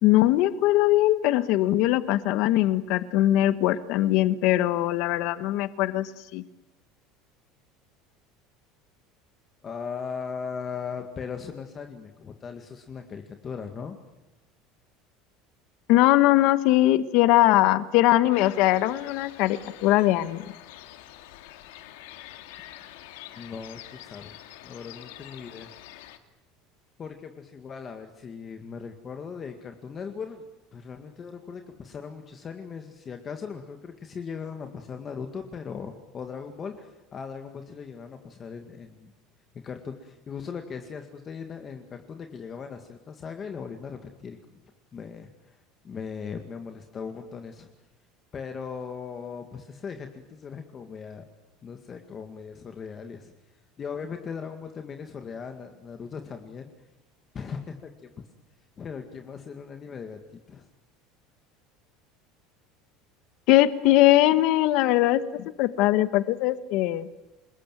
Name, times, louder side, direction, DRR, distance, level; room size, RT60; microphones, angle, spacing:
voice 1, 0.0-6.4 15.9-20.4 63.5-67.1, left 15 dB, 55° left, 13 dB, 1.4 m, -21 dB
voice 2, 9.6-14.0 23.3-24.4 24.6-25.7 27.0-30.4 30.7-39.1 39.6-44.4 44.9-45.6 45.8-47.7 48.3-51.3 51.6-53.3 53.8-56.7 57.3-58.2 58.8-60.7, left 6 dB, 25° left, 6 dB, 2.0 m, -38 dB
sound 1, 18.3-26.2, left 13 dB, 90° left, 2.5 m, -46 dB
28.0 x 21.0 x 9.2 m, 0.98 s
cardioid pair, 160°, 0 cm